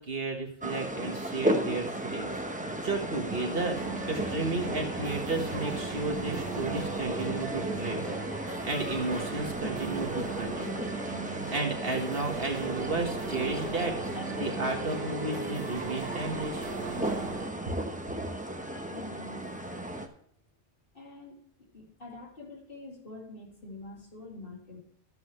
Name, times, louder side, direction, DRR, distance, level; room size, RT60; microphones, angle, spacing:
voice 1, 0.0-2.3 2.8-3.8 4.0-8.2 8.6-10.7 11.5-16.7, right 3 dB, 55° right, 2 dB, 1.7 m, -33 dB
sound 1, 0.6-20.1, right 1 dB, 10° right, 0.7 m, -34 dB
sound 2, 3.8-17.5, right 4 dB, 80° right, 1.7 m, -40 dB
voice 2, 18.9-19.5 20.9-21.4 21.7-24.8, left 2 dB, 50° left, -1 dB, 2.5 m, -46 dB
12.5 x 7.7 x 3.2 m, 0.68 s
omnidirectional pair, 1.2 m